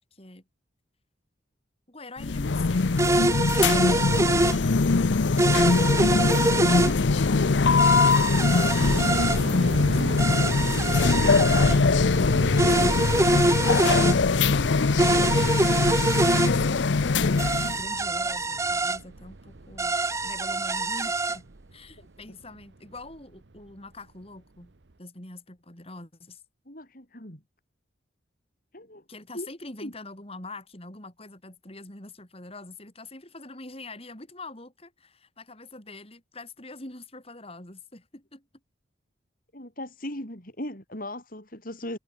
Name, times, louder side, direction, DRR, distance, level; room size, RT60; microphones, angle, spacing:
voice 1, 0.1-0.4 1.9-3.3 3.8-6.1 6.6-7.6 8.3-10.3 17.5-21.5 21.7-24.7 25.0-26.4 29.1-38.4, left 2 dB, 30° left, 4.6 m, -44 dB
sound 1, 2.2-17.8, left 4 dB, 70° left, 0.7 m, -22 dB
sound 2, 3.0-4.6 5.4-6.9 7.8-9.4 10.2-11.8 12.6-14.2 15.0-16.5 17.4-19.0 19.8-21.4, right 2 dB, 15° right, 0.7 m, -24 dB
sound 3, 8.8-23.7 23.9-24.0 24.6-24.9, right 2 dB, 65° right, 1.0 m, -37 dB
voice 2, 26.7-27.4 28.7-29.0 29.3-29.5 29.8-29.9 39.5-42.0, left 1 dB, 45° left, 6.9 m, -38 dB
head